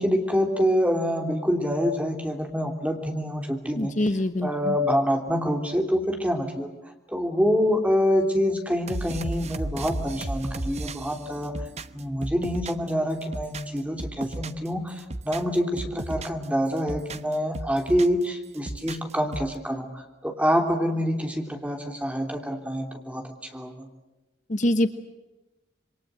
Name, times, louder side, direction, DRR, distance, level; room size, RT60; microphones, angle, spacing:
voice 1, 0.0-3.9 4.4-6.7 7.1-11.5 11.9-23.9, equal, 10° right, 4 dB, 3.3 m, -26 dB
voice 2, 3.8-4.8 24.5-24.9, left 1 dB, 45° left, 10 dB, 1.1 m, -24 dB
sound 1, 8.9-12.9 13.2-14.7 15.0-16.4 16.8-18.2 18.5-19.5, right 2 dB, 35° right, 1.0 m, -34 dB
27.5 x 23.5 x 7.8 m, 1.1 s
head